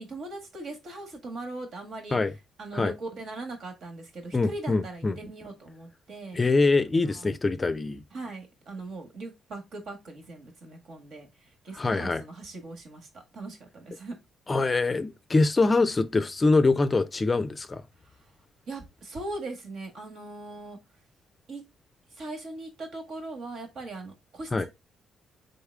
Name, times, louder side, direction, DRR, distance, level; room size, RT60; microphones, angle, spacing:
voice 1, 0.0-2.2 2.6-6.4 7.1-7.3 8.1-14.2 18.7-20.8 21.5-21.6 22.2-24.7, right 2 dB, 65° right, 1.6 m, -40 dB
voice 2, 4.3-5.1 6.3-8.0 11.7-12.2 14.5-17.8 24.5-24.7, left 3 dB, 25° left, 0.4 m, -24 dB
3.9 x 3.5 x 3.4 m
cardioid pair, 90°, 0 cm